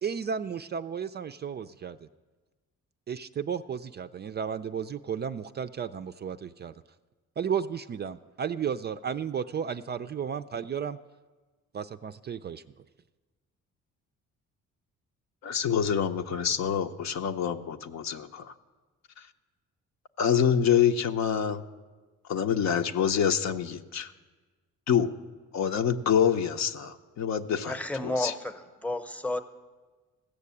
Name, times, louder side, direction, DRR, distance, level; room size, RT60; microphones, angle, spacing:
voice 1, 0.0-2.1 3.1-6.7 7.4-11.0 11.7-12.6, right 7 dB, 35° right, 0.4 m, -33 dB
voice 2, 15.4-18.5 20.2-21.6 22.3-24.1 24.9-25.1 25.5-27.8 28.0-28.3, left 8 dB, 65° left, 0.7 m, -26 dB
voice 3, 27.6-29.4, left 1 dB, 5° left, 0.8 m, -32 dB
15.5 x 6.6 x 8.3 m
cardioid pair, 90°, 30 cm